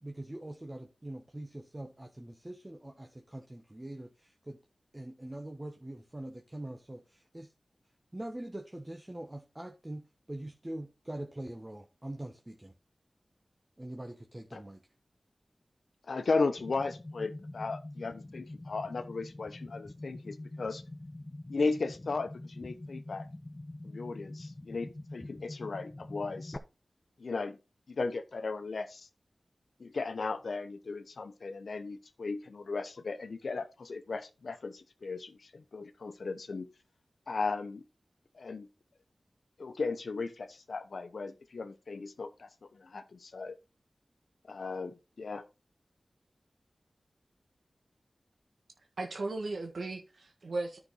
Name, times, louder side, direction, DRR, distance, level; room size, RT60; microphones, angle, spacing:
voice 1, 0.0-4.6 4.9-7.5 8.1-12.7 13.8-14.8, right 1 dB, 25° right, 1.2 m, -43 dB
voice 2, 16.1-20.8 21.5-23.3 23.8-26.6 27.2-27.6 27.9-29.1 29.8-36.7 37.3-37.8 38.3-38.7 39.6-43.6 44.5-45.4, left 4 dB, 80° left, 1.0 m, -36 dB
sound 1, 16.6-26.6, left 1 dB, 30° left, 1.1 m, -45 dB
voice 3, 49.0-50.8, right 2 dB, 80° right, 1.4 m, -36 dB
9.9 x 6.1 x 4.1 m
cardioid pair, 45°, 0 cm